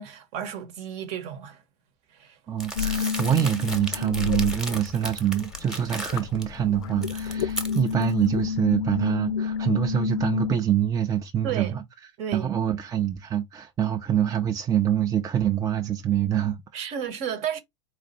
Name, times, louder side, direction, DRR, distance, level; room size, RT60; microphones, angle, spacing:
voice 1, 0.0-1.6 2.1-2.4 11.4-11.8 12.2-12.6 16.7-17.6, right 8 dB, 45° right, 1.0 m, -32 dB
voice 2, 2.5-11.8 12.3-17.0, right 10 dB, 20° right, 0.5 m, -25 dB
Crumpling crinkling, 2.6-6.4 6.8-8.1, equal, 5° right, 1.0 m, -35 dB
sound 1, 2.8-5.1 5.4-10.6, left 7 dB, 60° left, 0.5 m, -29 dB
4.3 x 2.5 x 4.0 m
figure-of-eight pair, 85°, 16 cm